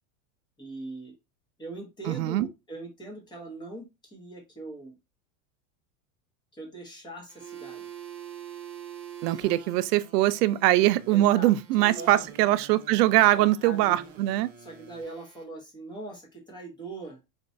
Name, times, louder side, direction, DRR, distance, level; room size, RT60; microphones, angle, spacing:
voice 1, 0.6-1.1 1.6-4.9 6.5-7.9 11.1-11.5 11.9-12.2 13.3-14.1 14.6-17.2, right 2 dB, 10° left, 0.8 m, -41 dB
voice 2, 2.1-2.5 9.2-14.5, right 15 dB, 90° right, 0.5 m, -22 dB
sound 1, 7.3-15.4, right 8 dB, 30° right, 0.7 m, -45 dB
4.3 x 2.2 x 2.5 m
supercardioid pair, 165°, 46 cm